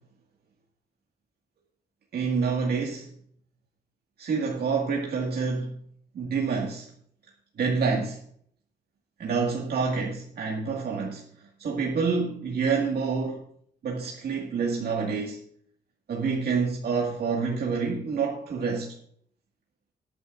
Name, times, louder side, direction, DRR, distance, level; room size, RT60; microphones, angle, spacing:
voice 1, 2.1-3.1 4.2-5.8 6.1-6.9 7.6-8.2 9.2-11.3 11.6-13.5 13.8-15.4 16.1-18.9, right 5 dB, 80° right, 2.0 m, -27 dB
19.0 x 9.7 x 2.6 m
wide cardioid pair, 135°, 16 cm